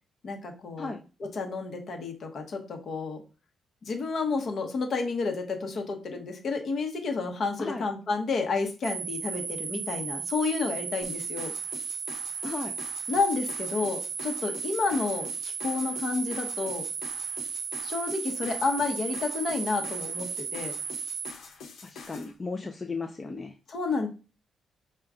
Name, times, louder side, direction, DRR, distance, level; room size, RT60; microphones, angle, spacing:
voice 1, 0.2-0.9 1.4-3.2 3.8-11.5 13.1-16.9 17.8-20.8 23.7-24.1, left 4 dB, 50° left, 5 dB, 0.9 m, -30 dB
sound 1, 8.8-21.3, right 6 dB, 70° right, 0.5 m, -35 dB
sound 2, 11.0-22.3, left 4 dB, 75° left, 0.9 m, -46 dB
voice 2, 12.4-12.7 21.8-23.5, left 3 dB, 20° left, 4 dB, 0.3 m, -35 dB
4.8 x 2.2 x 3.6 m, 0.33 s
cardioid pair, 145°, 0 cm